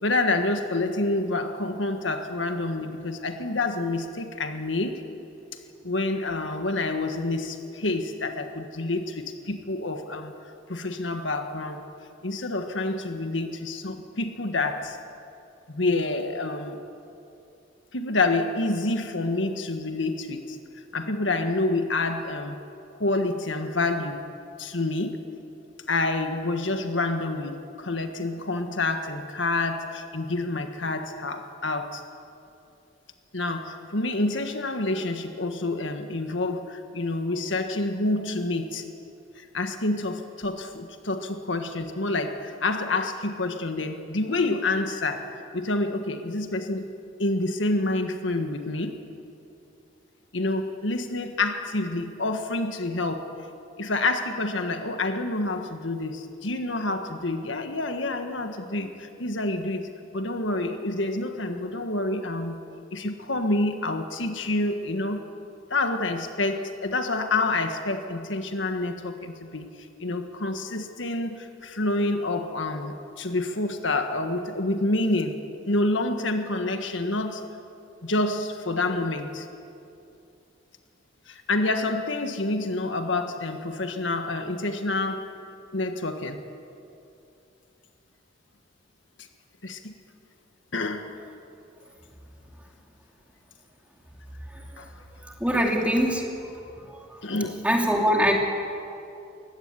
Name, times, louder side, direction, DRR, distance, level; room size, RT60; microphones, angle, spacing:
voice 1, 0.0-5.0 5.5-11.8 12.2-15.0 15.7-16.8 17.9-20.6 20.9-22.6 22.9-24.2 24.6-25.3 25.9-32.0 33.3-38.9 39.3-46.9 47.2-49.0 50.3-53.4 53.8-62.6 62.9-65.2 65.7-69.7 70.0-77.5 78.0-79.4 81.3-85.3 85.7-86.4 89.6-89.9 90.7-91.2 94.8-94.9 95.5-95.7 97.2-97.7, left 2 dB, 75° left, 6 dB, 1.6 m, -28 dB
voice 2, 95.4-96.2 96.9-97.0 97.6-98.3, equal, 5° right, 0 dB, 2.7 m, -22 dB
22.5 x 16.5 x 9.8 m, 2.6 s
head